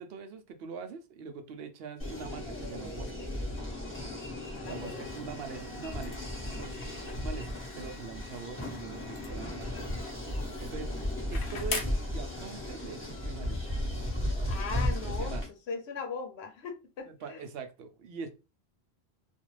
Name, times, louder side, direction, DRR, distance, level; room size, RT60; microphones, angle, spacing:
voice 1, 0.0-3.3 4.6-9.9 10.6-10.9 11.3-13.7 14.7-15.4 17.1-18.3, right 5 dB, 70° right, 0.8 m, -43 dB
sound 1, 2.0-15.5, left 1 dB, 10° left, 1.1 m, -35 dB
voice 2, 4.5-5.0 14.5-15.4 15.7-17.4, left 5 dB, 90° left, 1.0 m, -39 dB
sound 2, 4.6-15.1, left 4 dB, 60° left, 0.8 m, -45 dB
2.5 x 2.3 x 3.0 m
omnidirectional pair, 1.1 m